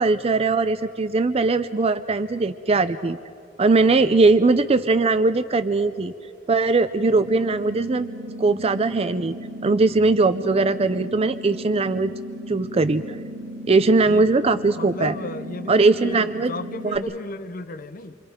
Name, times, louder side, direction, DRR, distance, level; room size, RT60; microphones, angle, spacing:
voice 1, 0.0-3.2 3.6-6.1 6.5-8.1 8.4-9.4 9.6-12.1 12.5-13.2 13.7-15.1 15.7-16.5 16.8-17.0, right 3 dB, 30° right, 11 dB, 0.5 m, -20 dB
sound 1, 7.0-17.0, equal, 50° right, 3.0 m, -36 dB
voice 2, 13.9-14.3 14.8-18.1, left 2 dB, 45° left, 11 dB, 0.8 m, -34 dB
29.0 x 25.0 x 5.2 m, 2.5 s
head